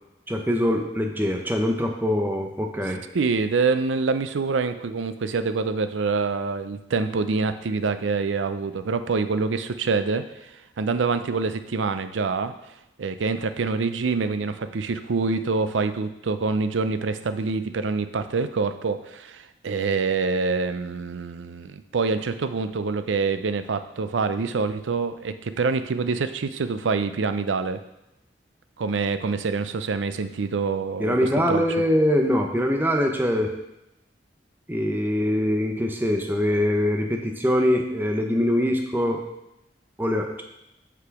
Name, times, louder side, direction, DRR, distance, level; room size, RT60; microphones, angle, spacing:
voice 1, 0.3-3.0 31.0-33.5 34.7-39.2 40.0-40.4, left 1 dB, 10° right, 3 dB, 0.6 m, -23 dB
voice 2, 3.1-10.3 10.8-12.5 13.0-27.8 28.8-31.2 31.5-31.6, right 4 dB, 90° right, 11 dB, 0.5 m, -26 dB
6.1 x 5.8 x 4.7 m, 0.90 s
head